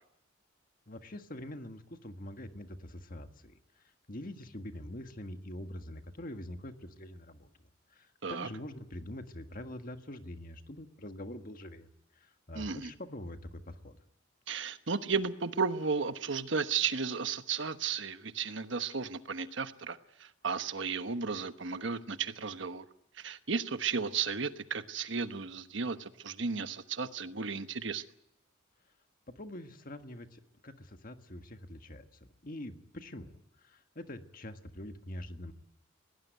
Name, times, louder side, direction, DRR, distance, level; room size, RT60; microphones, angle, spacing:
voice 1, 0.9-7.5 7.9-14.0 29.3-33.3 33.6-35.5, left 1 dB, 45° left, 7 dB, 1.6 m, -45 dB
voice 2, 12.5-12.9 14.5-22.8 23.2-28.0, right 5 dB, 65° right, 10 dB, 1.1 m, -34 dB
21.0 x 18.5 x 9.3 m, 0.80 s
head